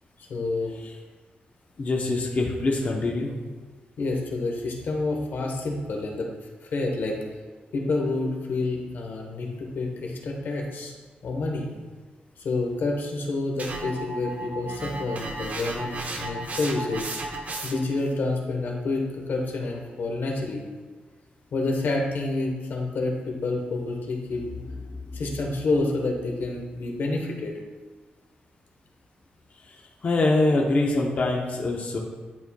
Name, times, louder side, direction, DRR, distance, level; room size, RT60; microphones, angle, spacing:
voice 1, 0.3-0.7 4.0-6.3 6.6-7.2 7.7-10.9 11.2-11.7 12.4-17.0 17.6-20.6 21.5-27.6, left 2 dB, 75° left, 1 dB, 1.1 m, -28 dB
voice 2, 1.8-3.3 29.6-32.0, left 2 dB, 45° left, -1 dB, 0.8 m, -24 dB
sound 1, 13.6-18.0, right 2 dB, 50° right, 0.8 m, -34 dB
10.5 x 4.3 x 2.3 m, 1.3 s
cardioid pair, 100°, 3 cm